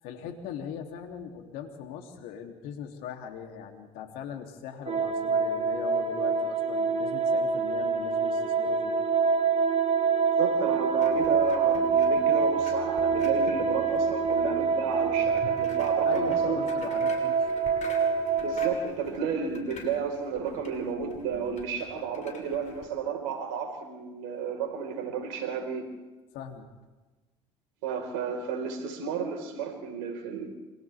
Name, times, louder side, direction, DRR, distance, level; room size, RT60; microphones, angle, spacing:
voice 1, 0.0-9.0 16.0-17.4 26.3-26.7, left 8 dB, 70° left, 4 dB, 3.2 m, -40 dB
sound 1, 4.9-18.7, right 5 dB, 40° right, 1.8 m, -26 dB
voice 2, 10.3-16.7 18.4-25.9 27.8-30.5, right 6 dB, 80° right, 3 dB, 4.9 m, -32 dB
sound 2, 10.9-22.9, left 4 dB, 50° left, 6.8 m, -47 dB
28.5 x 27.5 x 3.7 m, 1.2 s
hypercardioid pair, 70°, 16 cm